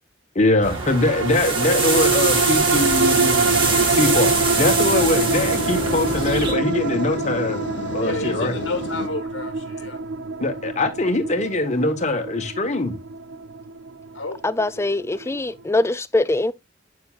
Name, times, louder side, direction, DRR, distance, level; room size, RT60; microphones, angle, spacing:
voice 1, 0.3-7.6 7.9-8.5 10.4-13.0, left 2 dB, 40° left, 1.3 m, -22 dB
sound 1, 0.6-6.5, right 3 dB, 25° right, 2.0 m, -24 dB
sound 2, 0.7-15.4 15.8-15.9, right 4 dB, 75° right, 0.4 m, -25 dB
sound 3, 3.4-9.1, left 3 dB, 70° left, 0.8 m, -32 dB
voice 2, 8.0-10.0 14.1-14.4, left 2 dB, 85° left, 1.2 m, -30 dB
voice 3, 14.4-16.5, left 2 dB, 15° left, 0.4 m, -22 dB
8.6 x 6.7 x 2.4 m
head